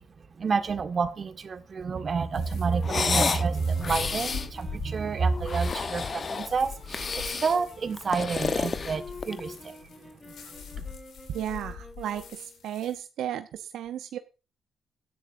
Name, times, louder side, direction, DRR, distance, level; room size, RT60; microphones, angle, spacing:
voice 1, 0.2-10.8, right 5 dB, 40° right, 9 dB, 1.6 m, -29 dB
sound 1, 2.3-13.0, left 7 dB, 70° left, 3.6 m, -43 dB
sound 2, 2.6-12.7, left 2 dB, 25° left, 4.6 m, -47 dB
sound 3, 2.8-3.5 3.8-4.5 5.3-6.5 6.9-7.6 8.0-9.5, left 5 dB, 40° left, 1.0 m, -30 dB
voice 2, 11.3-14.2, right 11 dB, 80° right, 9 dB, 0.7 m, -34 dB
16.5 x 10.5 x 2.6 m, 0.34 s
cardioid pair, 90°, 0 cm